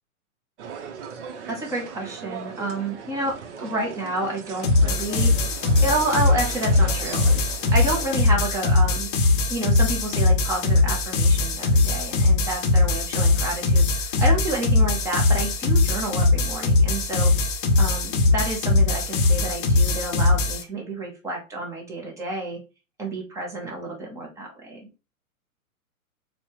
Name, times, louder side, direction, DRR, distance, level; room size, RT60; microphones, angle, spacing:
sound 1, 0.6-8.2, right 6 dB, 55° right, 0.8 m, -38 dB
voice 1, 1.5-5.5 5.8-7.3 7.7-9.1 9.5-17.3 17.8-22.6 23.0-24.9, right 2 dB, 5° right, -1 dB, 0.5 m, -29 dB
sound 2, 4.6-20.6, left 2 dB, 35° left, 0.7 m, -21 dB
4.2 x 2.1 x 2.8 m, 0.30 s
hypercardioid pair, 120°, 44 cm